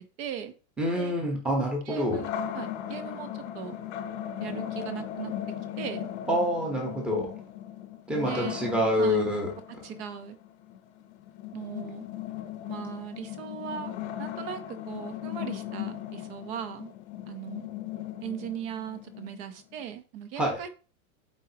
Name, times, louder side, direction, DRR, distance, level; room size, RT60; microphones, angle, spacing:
voice 1, 0.2-0.5 0.9-1.1 1.9-3.8 4.4-5.3 5.8-6.1 8.2-8.6 9.0-9.3 9.7-10.4 11.5-12.1 12.7-13.9 14.2-16.9 17.3-17.7 18.2-20.7, right 9 dB, 45° right, 9 dB, 0.9 m, -38 dB
voice 2, 0.8-2.2 6.3-7.3 8.1-9.5 20.4-20.6, equal, 5° right, -1 dB, 1.0 m, -27 dB
sound 1, 2.1-19.9, left 11 dB, 50° left, 0.8 m, -38 dB
8.4 x 4.3 x 2.8 m, 0.35 s
supercardioid pair, 165°, 42 cm